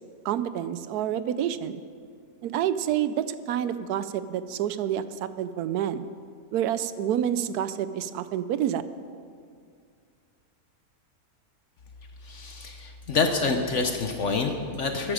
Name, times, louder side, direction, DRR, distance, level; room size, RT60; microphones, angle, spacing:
voice 1, 0.2-1.8 2.4-6.1 6.5-8.8, right 10 dB, 85° right, 13 dB, 1.1 m, -28 dB
voice 2, 12.2-15.1, left 4 dB, 55° left, 5 dB, 1.1 m, -27 dB
14.0 x 10.0 x 5.0 m, 2.2 s
omnidirectional pair, 1.6 m